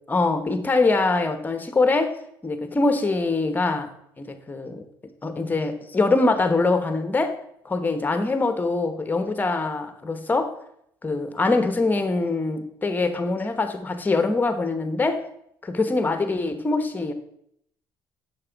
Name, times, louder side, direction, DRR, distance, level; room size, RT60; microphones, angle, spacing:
voice 1, 0.1-2.2 2.4-3.9 4.2-4.8 5.2-7.4 7.6-10.5 11.0-15.2 15.6-17.1, left 3 dB, 20° left, 9 dB, 1.0 m, -23 dB
7.5 x 6.1 x 4.6 m, 0.73 s
cardioid pair, 100°, 9 cm